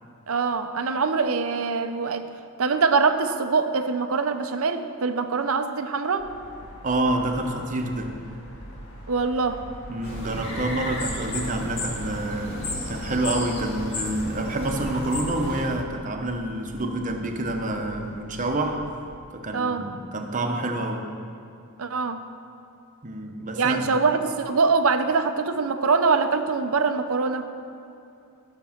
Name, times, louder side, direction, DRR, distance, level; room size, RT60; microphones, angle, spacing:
voice 1, 0.3-2.3 2.6-6.3 9.1-9.6 19.5-19.9 21.8-22.2 23.5-27.5, right 4 dB, 70° right, 9 dB, 0.7 m, -23 dB
sound 1, 6.2-19.2, equal, 90° left, 1.9 m, -44 dB
voice 2, 6.8-8.2 9.9-18.8 19.3-21.1 23.0-24.0, right 1 dB, 35° right, 3 dB, 1.0 m, -28 dB
sound 2, 10.0-15.6, left 2 dB, 60° left, 2.3 m, -33 dB
13.0 x 6.9 x 5.9 m, 2.6 s
head